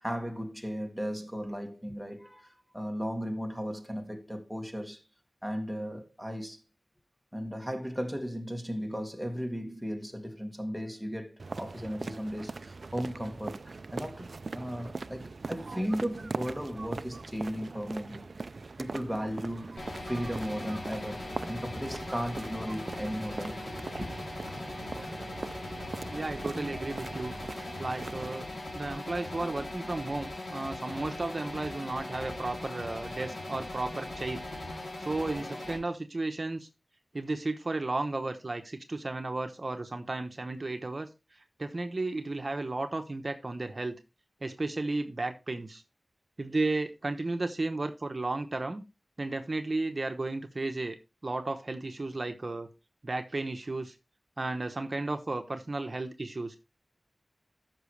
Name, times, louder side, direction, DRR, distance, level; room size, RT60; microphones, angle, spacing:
voice 1, 0.0-5.0 5.4-6.6 7.3-18.3 18.8-24.1, equal, 5° left, 2.1 m, -36 dB
sound 1, 11.4-28.4, right 3 dB, 75° right, 0.4 m, -41 dB
sound 2, 19.8-35.8, left 1 dB, 70° left, 3.0 m, -40 dB
voice 2, 26.1-27.3 27.8-28.5 28.7-34.4 35.0-36.7 37.1-43.9 44.4-45.8 46.4-48.8 49.2-51.0 51.2-52.7 53.0-54.0 54.4-56.6, right 2 dB, 50° right, 1.0 m, -34 dB
13.5 x 6.1 x 3.3 m
wide cardioid pair, 70°, 0 cm